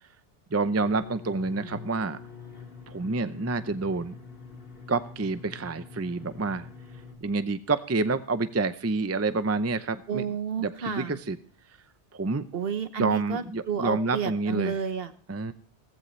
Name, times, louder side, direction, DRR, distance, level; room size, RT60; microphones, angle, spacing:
voice 1, 0.5-2.2 2.9-4.1 4.9-6.7 7.2-10.3 10.6-11.4 12.1-12.4 13.0-14.8 15.3-15.5, right 3 dB, 20° right, 12 dB, 0.5 m, -28 dB
sound 1, 0.8-7.2, left 5 dB, 50° left, 2.8 m, -45 dB
voice 2, 10.1-11.2 12.5-15.1, right 7 dB, 60° right, 11 dB, 1.2 m, -31 dB
16.5 x 15.0 x 3.2 m, 0.40 s
omnidirectional pair, 1.2 m